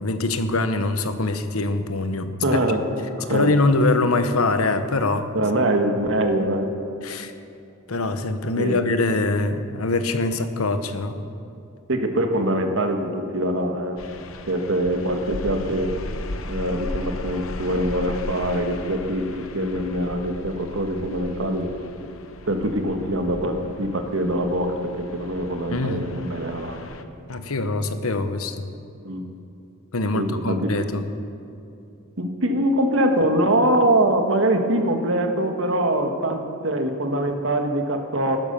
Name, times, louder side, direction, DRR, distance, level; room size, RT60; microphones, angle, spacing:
voice 1, 0.0-2.3 3.3-5.3 7.0-7.3 7.9-11.2 25.7-26.1 27.3-28.6 29.9-31.0, left 2 dB, 90° left, 9 dB, 1.0 m, -23 dB
voice 2, 2.4-2.8 3.2-3.5 5.3-6.7 8.6-8.8 11.9-14.0 14.5-15.9 16.5-21.7 22.5-26.8 29.0-29.2 30.1-30.7 32.2-38.4, right 1 dB, 65° right, 4 dB, 1.7 m, -23 dB
sound 1, 14.0-27.0, left 2 dB, 65° left, 0.9 m, -36 dB
15.5 x 12.0 x 7.0 m, 2.7 s
head